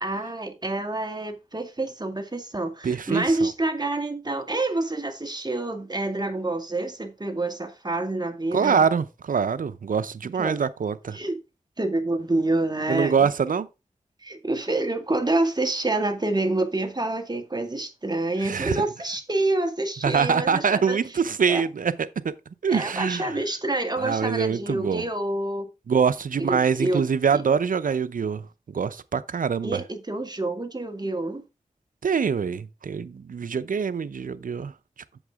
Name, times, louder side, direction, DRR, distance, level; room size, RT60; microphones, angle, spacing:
voice 1, 0.0-8.8 10.4-10.6 11.1-11.4 11.8-13.3 14.2-21.0 21.5-21.6 22.7-25.7 26.4-27.0 27.3-27.4 29.6-31.4, right 2 dB, 30° right, 2.0 m, -27 dB
voice 2, 2.8-3.5 8.5-11.2 12.9-13.7 18.4-18.9 20.0-21.9 22.2-22.3 22.6-23.3 24.0-25.0 25.9-28.4 28.7-29.8 32.0-34.7, right 6 dB, 75° right, 0.7 m, -24 dB
8.0 x 7.1 x 3.5 m
cardioid pair, 45°, 14 cm